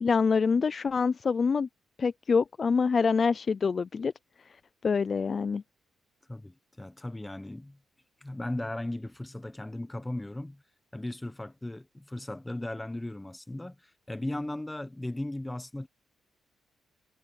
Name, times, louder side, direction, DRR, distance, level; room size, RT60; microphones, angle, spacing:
voice 1, 0.0-1.7 2.0-4.1 4.8-5.6, left 5 dB, 35° left, 0.4 m, -25 dB
voice 2, 6.3-7.8 8.2-10.6 10.9-15.9, left 1 dB, 10° left, 1.0 m, -37 dB
cardioid pair, 140°, 0 cm